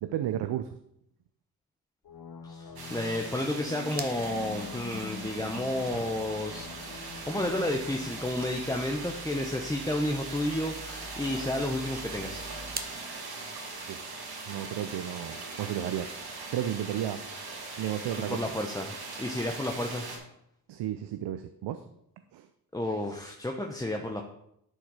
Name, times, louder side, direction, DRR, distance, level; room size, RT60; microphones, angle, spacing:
voice 1, 0.0-0.8 13.9-16.1 16.5-17.3 17.6-18.4 20.7-21.8 22.3-22.5, right 11 dB, 80° right, 10 dB, 0.6 m, -33 dB
sound 1, 2.0-9.4, left 6 dB, 55° left, 1.0 m, -45 dB
voice 2, 2.4-12.4 18.2-20.1 22.7-24.2, left 1 dB, 10° left, 2 dB, 1.0 m, -31 dB
sound 2, 2.8-20.2, right 3 dB, 65° right, 2.4 m, -41 dB
sound 3, 3.8-13.0, right 2 dB, 20° right, 1.1 m, -46 dB
11.0 x 4.6 x 4.8 m, 0.77 s
supercardioid pair, 50°, 41 cm